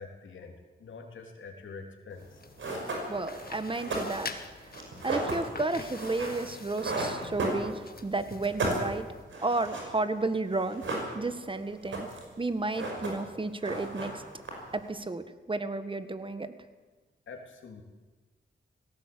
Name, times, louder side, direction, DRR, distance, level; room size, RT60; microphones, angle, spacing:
voice 1, 0.0-2.4 17.3-17.8, left 4 dB, 90° left, 3 dB, 3.2 m, -45 dB
sound 1, 2.2-9.2, left 4 dB, 50° left, 1.9 m, -46 dB
sound 2, 2.2-2.3 2.6-8.1 8.3-10.0 10.2-10.3 10.5-11.5 11.7-12.3 12.6-13.3 13.6-14.8, right 2 dB, 85° right, 5.7 m, -34 dB
voice 2, 3.1-4.4 5.0-9.1 9.4-10.9 11.1-12.1 12.4-14.2 14.7-16.5, right 3 dB, 25° right, 11 dB, 1.7 m, -32 dB
18.5 x 17.0 x 8.7 m, 1.3 s
cardioid pair, 75°, 19 cm